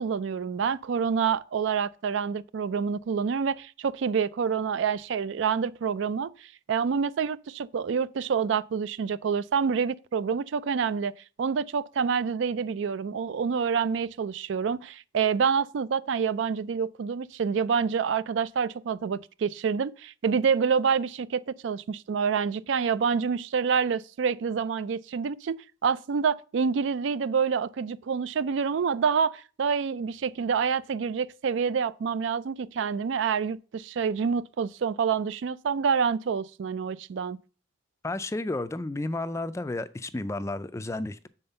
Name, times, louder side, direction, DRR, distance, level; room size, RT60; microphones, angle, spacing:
voice 1, 0.0-6.3 6.7-11.1 11.4-25.6 25.8-37.4, right 6 dB, 70° right, 0.4 m, -27 dB
voice 2, 38.0-41.3, left 2 dB, 15° left, 0.3 m, -32 dB
7.2 x 4.3 x 6.6 m
head